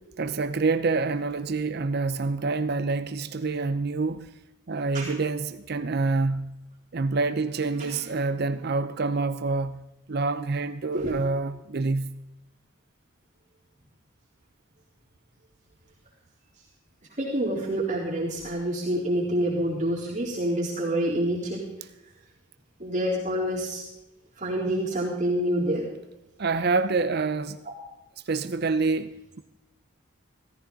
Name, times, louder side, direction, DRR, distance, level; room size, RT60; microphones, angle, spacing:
voice 1, 0.2-4.3 4.7-6.5 6.9-9.8 10.1-12.1 26.4-27.6 28.3-29.4, right 3 dB, 55° right, 0.6 m, -27 dB
voice 2, 17.2-21.6 22.8-23.8 24.4-25.8, right 1 dB, 40° right, 4.0 m, -27 dB
16.5 x 14.5 x 4.0 m
head